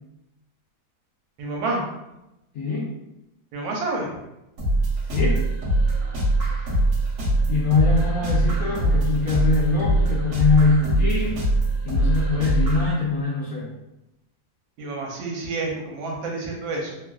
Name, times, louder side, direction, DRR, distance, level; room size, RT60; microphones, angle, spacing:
voice 1, 1.4-1.9 3.5-4.1 14.8-17.0, right 2 dB, 80° right, -1 dB, 1.4 m, -29 dB
sound 1, 4.6-12.9, right 2 dB, 60° right, 0.9 m, -22 dB
voice 2, 5.0-5.4 7.5-11.3 11.8-13.7, left 4 dB, 70° left, -7 dB, 0.8 m, -23 dB
3.2 x 2.4 x 2.2 m, 0.92 s
omnidirectional pair, 2.1 m